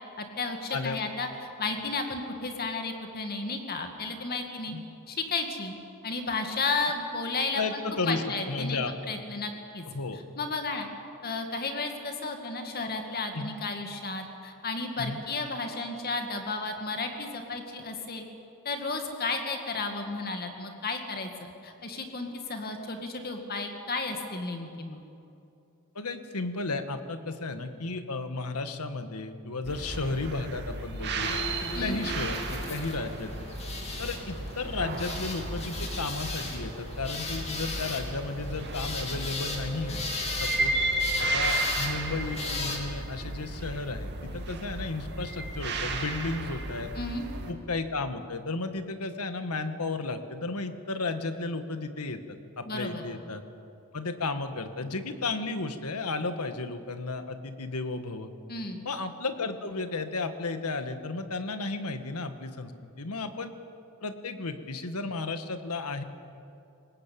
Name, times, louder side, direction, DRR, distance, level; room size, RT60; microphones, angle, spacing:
voice 1, 0.2-4.7 5.1-5.7 6.0-8.8 9.1-9.9 10.1-10.9 11.2-18.2 18.6-25.0 31.7-32.0 47.0-47.3 52.7-53.0 58.5-58.8, left 3 dB, 45° left, 4 dB, 2.1 m, -33 dB
voice 2, 7.5-9.1 9.9-10.2 13.3-13.5 15.0-15.2 25.9-31.4 31.8-33.3 34.0-40.1 40.4-40.8 41.2-46.9 47.5-52.2 52.6-53.4 53.9-58.3 58.8-62.7 63.0-63.5 64.0-66.0, left 3 dB, 85° left, 9 dB, 1.6 m, -33 dB
sound 1, 29.6-47.5, right 2 dB, 50° right, 2.4 m, -34 dB
sound 2, 31.2-42.8, left 3 dB, 30° left, 3.1 m, -37 dB
22.5 x 19.5 x 8.6 m, 2.7 s
head